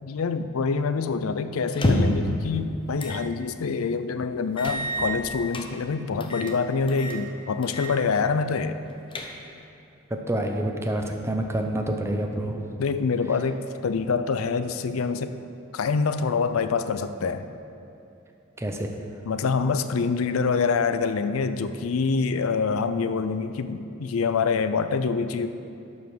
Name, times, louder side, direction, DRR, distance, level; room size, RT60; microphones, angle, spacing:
voice 1, 0.0-8.8 12.8-15.3 15.7-17.5 19.3-25.5, left 5 dB, 90° left, 10 dB, 0.5 m, -26 dB
sound 1, 1.7-2.3 3.0-3.2 3.6-3.7 4.6-5.7 6.2-6.6 6.9-7.2 7.6-7.9 8.3-8.4 8.8-9.6, equal, 25° left, 0.7 m, -28 dB
voice 2, 10.1-12.6 18.6-19.0, right 1 dB, 15° right, 3 dB, 0.7 m, -28 dB
11.5 x 5.4 x 6.2 m, 2.8 s
head